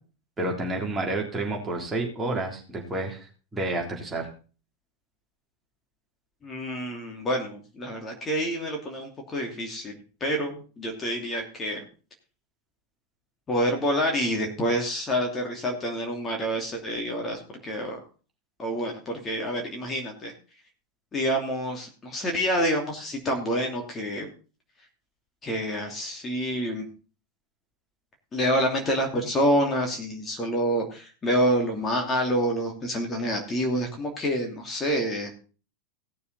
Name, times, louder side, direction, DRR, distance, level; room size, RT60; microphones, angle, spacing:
voice 1, 0.4-3.3 3.5-4.3, right 2 dB, 15° right, -1 dB, 3.5 m, -29 dB
voice 2, 6.4-9.9 10.2-11.8 13.5-18.0 18.6-20.3 21.1-24.3 25.4-26.8 28.3-35.4, equal, 20° left, 2 dB, 2.8 m, -27 dB
17.5 x 6.9 x 4.1 m, 0.36 s
figure-of-eight pair, 90°, 0 cm